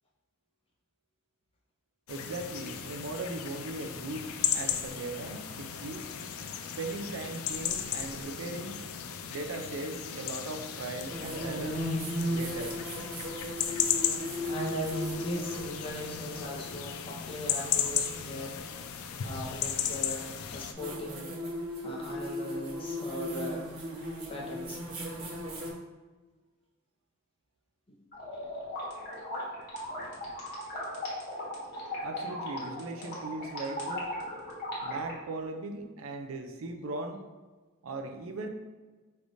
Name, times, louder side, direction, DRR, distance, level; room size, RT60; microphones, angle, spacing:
sound 1, 2.1-20.7, left 9 dB, 75° left, 0.4 m, -35 dB
voice 1, 2.1-6.1 6.8-8.8 9.3-11.9 12.3-12.8 32.0-34.1 34.8-37.2 37.8-38.5, right 2 dB, 65° right, 5 dB, 0.5 m, -38 dB
sound 2, 11.1-16.6 18.6-18.7 20.8-25.7, equal, 80° right, 1.0 m, -36 dB
voice 2, 14.4-18.6 19.2-21.4 21.8-23.7 24.3-24.8, equal, 25° left, -2 dB, 0.6 m, -38 dB
sound 3, 28.1-35.1, left 1 dB, 50° left, 1.2 m, -37 dB
4.9 x 3.3 x 2.6 m, 1.3 s
head